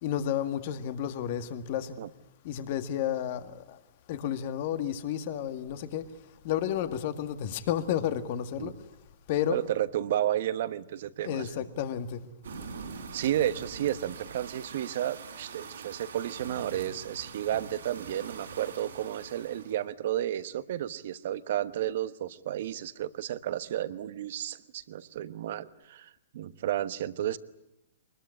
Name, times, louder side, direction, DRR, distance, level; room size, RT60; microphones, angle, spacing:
voice 1, 0.0-2.0 2.4-3.8 4.1-6.1 6.4-8.8 9.3-9.6 11.2-12.2, left 10 dB, 50° left, 1.9 m, -31 dB
voice 2, 9.5-11.5 13.1-27.4, right 11 dB, 60° right, 1.1 m, -32 dB
sound 1, 12.4-19.8, right 5 dB, 80° right, 4.2 m, -44 dB
23.0 x 20.5 x 9.9 m
hypercardioid pair, 125°, 0 cm